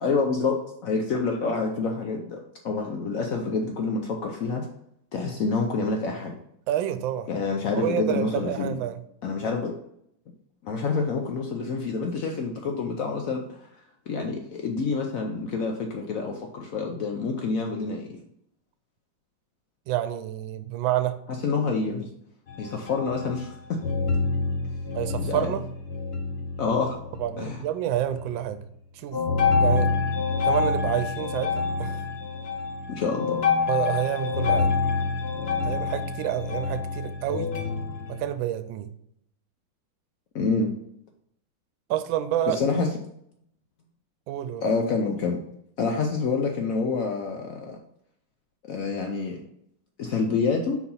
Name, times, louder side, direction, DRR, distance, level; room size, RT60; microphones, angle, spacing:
voice 1, 0.0-4.7 5.1-6.3 7.3-8.8 9.2-9.7 10.6-13.7 14.1-18.1 21.4-22.1 22.6-23.8 25.2-25.5 26.6-27.0 27.4-27.6 32.9-33.4 40.3-40.7 42.5-42.9 44.6-45.4 45.8-47.8 48.7-49.4 50.0-50.8, left 4 dB, 80° left, 2 dB, 0.7 m, -27 dB
voice 2, 6.7-7.3 7.8-9.0 19.9-21.2 24.9-25.6 27.2-28.6 29.0-29.2 29.6-29.9 30.5-32.0 33.7-34.7 35.6-37.5 38.1-38.9 41.9-42.6 44.3-44.6, right 11 dB, 75° right, 11 dB, 1.3 m, -28 dB
sound 1, 22.5-23.6 23.8-27.6 28.0-28.5 29.1-38.2, left 4 dB, 50° left, 0.8 m, -27 dB
4.7 x 4.2 x 5.3 m, 0.74 s
omnidirectional pair, 2.2 m